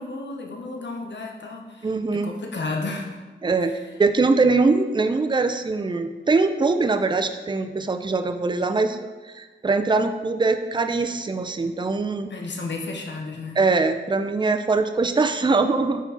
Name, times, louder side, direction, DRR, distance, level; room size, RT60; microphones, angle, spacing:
voice 1, 0.0-3.2 3.6-3.8 12.3-13.6, left 3 dB, 65° left, 2 dB, 0.8 m, -33 dB
voice 2, 1.8-2.3 3.4-12.3 13.6-16.0, right 3 dB, 25° right, 8 dB, 0.4 m, -22 dB
5.8 x 4.5 x 4.1 m, 1.3 s
cardioid pair, 50°, 20 cm